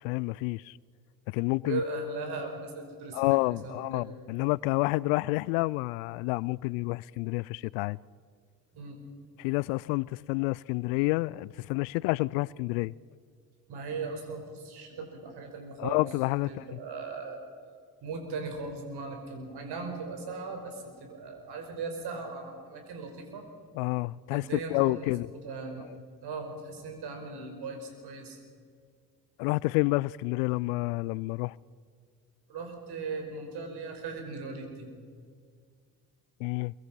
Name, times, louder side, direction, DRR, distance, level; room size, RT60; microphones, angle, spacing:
voice 1, 0.0-0.8 1.3-1.8 3.1-8.0 9.4-12.9 15.8-16.8 23.7-25.3 29.4-31.5 36.4-36.7, left 23 dB, 75° left, 0.5 m, -29 dB
voice 2, 1.6-4.1 8.7-9.0 13.7-16.0 16.5-17.4 18.0-23.4 24.3-25.8 26.2-28.4 32.5-34.9, right 3 dB, 65° right, 5.2 m, -38 dB
24.0 x 23.0 x 5.8 m
hypercardioid pair, 50°, 42 cm